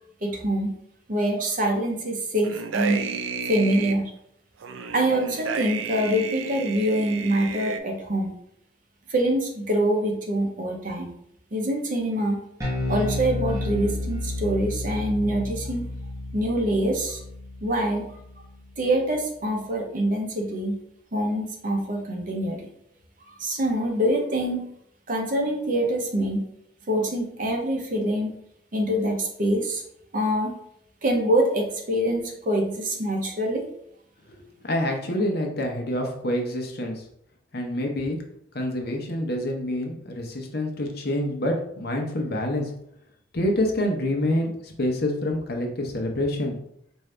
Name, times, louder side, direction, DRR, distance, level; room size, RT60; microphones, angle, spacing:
voice 1, 0.2-0.7 1.1-3.0 3.4-4.1 4.9-8.3 9.1-11.1 11.5-12.4 12.9-15.8 16.3-17.2 17.6-18.0 18.8-20.8 21.1-22.7 23.4-24.7 25.1-26.4 26.9-28.3 28.7-29.8 30.1-30.5 31.0-33.6, right 1 dB, 45° right, 2 dB, 0.8 m, -25 dB
sound 1, 2.4-4.0 4.6-7.8, right 5 dB, 85° right, 0.4 m, -32 dB
Bass guitar, 12.6-19.1, left 2 dB, 15° right, 1.0 m, -31 dB
voice 2, 34.3-37.0 37.5-38.2 38.5-42.7 43.3-46.6, left 1 dB, 55° left, 2 dB, 0.8 m, -27 dB
4.7 x 2.6 x 3.3 m, 0.72 s
head